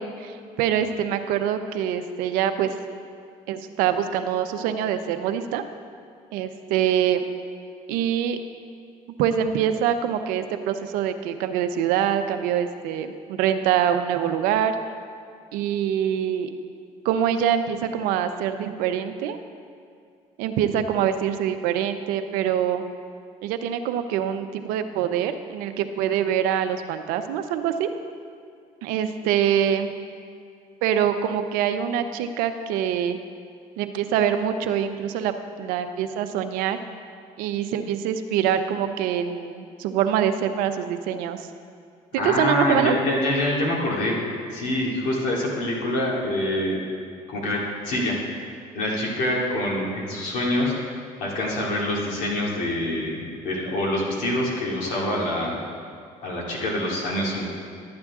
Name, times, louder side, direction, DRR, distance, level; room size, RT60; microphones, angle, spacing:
voice 1, 0.0-2.7 3.5-5.6 6.3-7.2 7.9-8.4 9.2-14.8 15.5-16.5 17.0-19.4 20.4-22.8 23.4-27.9 28.8-29.9 30.8-33.2 33.8-35.3 35.6-36.8 37.4-41.5 42.1-43.0, right 9 dB, 85° right, 8 dB, 0.6 m, -24 dB
voice 2, 42.2-44.2 44.5-46.8 47.3-48.2 48.7-50.7 51.2-55.6 56.2-57.5, left 1 dB, 70° left, -3 dB, 2.4 m, -25 dB
12.0 x 8.7 x 3.6 m, 2.3 s
cardioid pair, 95°, 14 cm